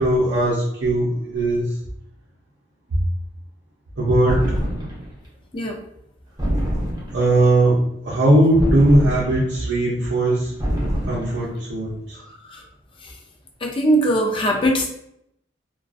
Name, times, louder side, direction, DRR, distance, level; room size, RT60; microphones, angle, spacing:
voice 1, 0.0-1.8 2.9-3.1 4.0-4.6 7.1-10.6 11.0-12.2, right 1 dB, 70° right, -8 dB, 0.6 m, -19 dB
sound 1, 4.3-5.1 6.4-7.4 8.6-9.6 10.6-11.5, equal, 20° right, 0.6 m, -25 dB
voice 2, 12.1-12.7 13.0-13.2 13.6-14.9, right 1 dB, 30° left, 1 dB, 0.4 m, -21 dB
2.4 x 2.2 x 2.4 m, 0.74 s
head